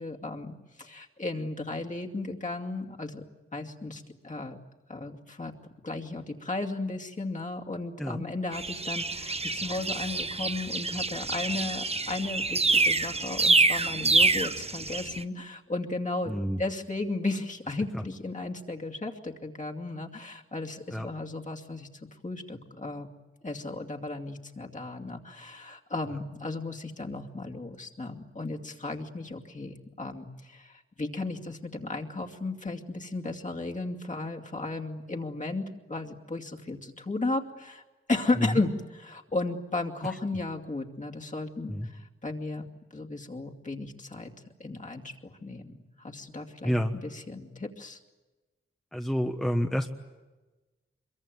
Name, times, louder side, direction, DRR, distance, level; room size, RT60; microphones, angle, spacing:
voice 1, 0.0-3.2 3.5-4.6 4.9-5.5 5.8-21.9 22.2-23.1 23.4-37.8 38.1-42.7 42.9-44.3 44.6-46.7 47.0-48.0, left 2 dB, 35° left, 1 dB, 2.6 m, -35 dB
sound 1, 8.5-15.2, right 3 dB, 30° right, 0.9 m, -26 dB
voice 2, 16.3-16.6 17.9-18.0 20.9-21.1 38.4-38.6 40.0-40.1 41.7-41.9 46.6-47.0 48.9-49.9, equal, ahead, 4 dB, 1.3 m, -29 dB
26.0 x 23.0 x 9.3 m, 1.2 s
wide cardioid pair, 95°, 21 cm